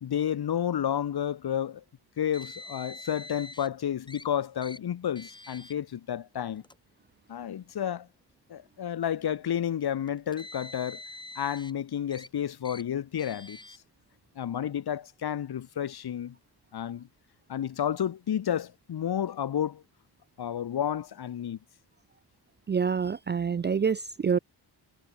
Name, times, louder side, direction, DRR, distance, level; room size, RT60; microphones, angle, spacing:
voice 1, 0.0-1.8 2.2-6.6 7.3-8.1 8.5-11.0 11.4-13.6 14.4-16.4 16.7-17.1 17.5-19.8 20.4-21.6, left 9 dB, 65° left, 1.8 m, -31 dB
Car, 2.3-3.7 4.1-4.2 4.6-4.8 5.2-5.7 6.6-6.7 7.7-7.8 10.1-11.7 12.1-12.3 12.6-12.8 13.2-13.8, left 2 dB, 10° left, 1.3 m, -45 dB
voice 2, 22.7-24.4, right 6 dB, 30° right, 0.4 m, -27 dB
wide cardioid pair, 130°, 40 cm